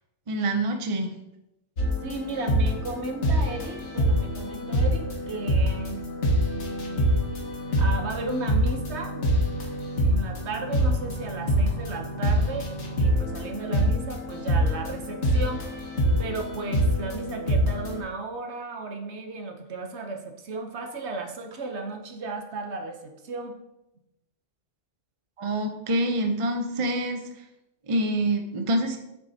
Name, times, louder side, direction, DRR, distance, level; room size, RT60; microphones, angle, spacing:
voice 1, 0.3-1.1 25.4-27.2 27.9-29.0, right 1 dB, 30° right, 4 dB, 0.6 m, -26 dB
sound 1, 1.8-18.0, equal, 60° left, 1.6 m, -25 dB
voice 2, 2.0-6.0 7.8-9.3 10.0-12.7 13.0-15.7 16.2-23.6, right 3 dB, 60° right, 4 dB, 1.1 m, -34 dB
8.2 x 6.3 x 2.8 m, 0.89 s
omnidirectional pair, 1.4 m